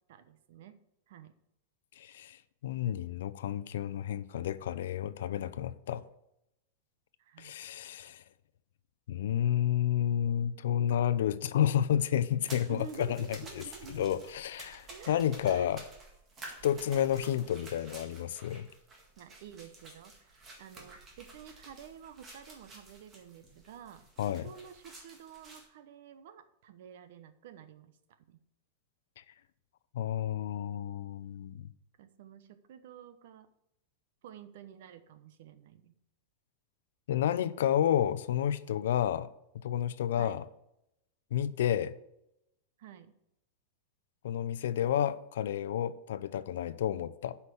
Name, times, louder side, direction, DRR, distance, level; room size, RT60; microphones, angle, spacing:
voice 1, 0.1-0.8 1.1-1.3 7.2-7.6 12.7-14.2 14.9-15.7 19.2-28.0 28.3-28.4 32.0-33.5 34.2-36.0 40.1-40.4 42.8-43.1, right 8 dB, 60° right, 0.9 m, -50 dB
voice 2, 2.0-6.0 7.4-8.2 9.1-15.8 16.6-18.7 24.2-24.5 29.9-31.7 37.1-39.3 39.6-40.4 41.3-42.0 44.2-47.4, left 10 dB, 75° left, 0.6 m, -31 dB
sound 1, 12.4-25.7, right 2 dB, 20° right, 1.8 m, -51 dB
8.2 x 5.8 x 6.9 m
supercardioid pair, 160°, 0 cm